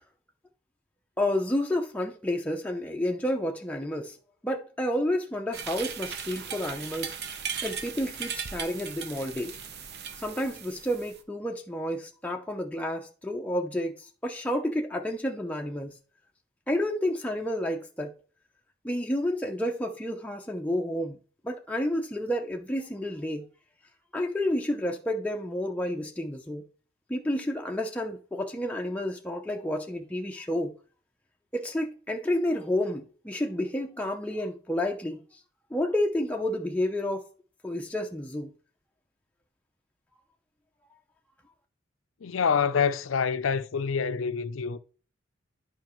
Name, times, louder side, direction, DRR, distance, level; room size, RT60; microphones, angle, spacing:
voice 1, 1.2-4.2 4.4-7.1 7.6-9.5 10.2-16.0 16.7-18.1 18.8-21.2 21.4-23.5 24.1-26.6 27.1-30.7 31.5-35.2 35.7-37.2 37.6-38.5, left 1 dB, 5° left, 0.6 m, -30 dB
sound 1, 5.5-11.2, right 7 dB, 55° right, 0.9 m, -37 dB
voice 2, 42.2-44.8, left 6 dB, 80° left, 0.5 m, -26 dB
11.0 x 5.0 x 3.1 m
head